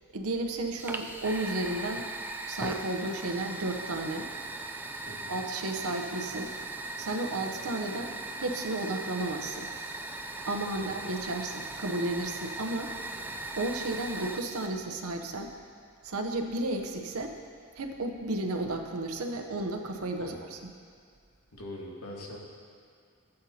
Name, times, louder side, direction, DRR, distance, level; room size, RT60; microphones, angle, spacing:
voice 1, 0.1-2.1 2.5-4.3 5.3-6.5 7.0-8.1 8.4-9.7 10.4-12.9 13.6-15.5 16.0-17.3 17.7-20.7, right 2 dB, 80° right, 4 dB, 0.8 m, -33 dB
Fire, 0.8-14.7, right 2 dB, 10° right, 0.3 m, -39 dB
voice 2, 5.1-5.4 10.8-10.9 13.2-13.4 20.2-20.4 21.5-22.4, left 1 dB, 90° left, -2 dB, 1.5 m, -43 dB
14.5 x 7.8 x 2.8 m, 2.2 s
head